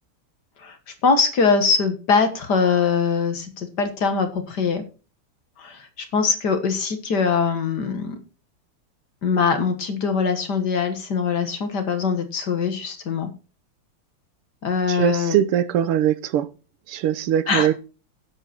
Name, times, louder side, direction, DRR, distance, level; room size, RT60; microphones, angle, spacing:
voice 1, 1.0-4.8 5.6-8.2 9.2-13.3 14.6-15.4 17.5-17.7, left 5 dB, 50° left, 1.9 m, -22 dB
voice 2, 14.9-16.5 16.9-17.7, right 10 dB, 85° right, 1.8 m, -21 dB
11.0 x 8.0 x 4.4 m
omnidirectional pair, 2.4 m